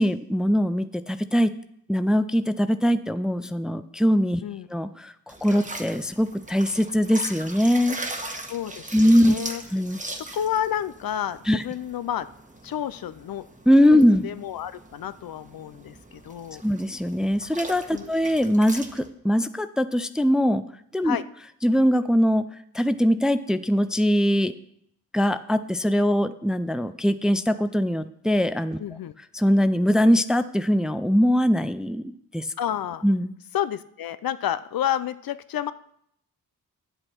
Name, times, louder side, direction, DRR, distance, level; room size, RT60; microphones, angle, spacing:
voice 1, 0.0-1.5 1.9-4.4 4.7-8.0 8.9-9.3 9.7-10.0 11.5-11.6 13.7-14.2 16.6-20.6 20.9-21.2 21.6-22.4 22.7-24.5 25.1-28.8 29.3-32.4 33.0-33.3, equal, ahead, 11 dB, 0.4 m, -21 dB
sound 1, 5.3-19.1, right 2 dB, 20° right, 1.2 m, -40 dB
voice 2, 8.5-9.6 10.2-12.3 12.6-13.5 14.2-16.6 17.9-18.1 21.0-21.2 28.8-29.1 32.6-33.0 33.5-35.7, left 10 dB, 70° left, 14 dB, 0.5 m, -30 dB
9.7 x 7.9 x 4.5 m, 0.71 s
cardioid pair, 85°, 37 cm